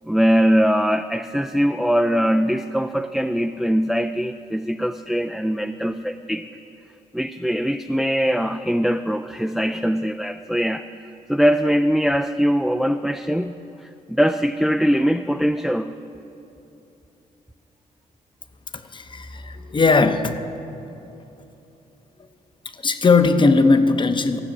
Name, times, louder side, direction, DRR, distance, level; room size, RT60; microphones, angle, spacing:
voice 1, 0.1-6.5 7.1-10.9 11.3-15.9, equal, ahead, 6 dB, 0.3 m, -21 dB
voice 2, 18.7-20.4 22.7-24.4, left 4 dB, 30° left, 9 dB, 0.8 m, -18 dB
14.0 x 6.1 x 8.5 m, 2.9 s
cardioid pair, 75°, 16 cm